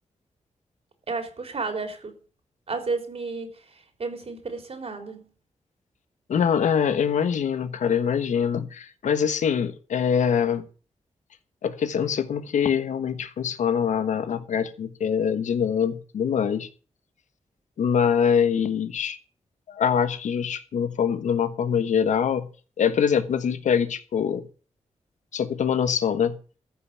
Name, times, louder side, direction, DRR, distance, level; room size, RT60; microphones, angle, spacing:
voice 1, 1.1-2.1 2.7-5.3, right 4 dB, 55° right, 3.6 m, -32 dB
voice 2, 6.3-10.6 11.6-16.7 17.8-19.2 19.7-22.5 22.8-24.5 25.3-26.4, left 7 dB, 85° left, 1.1 m, -24 dB
14.0 x 5.8 x 8.3 m
cardioid pair, 65°, 12 cm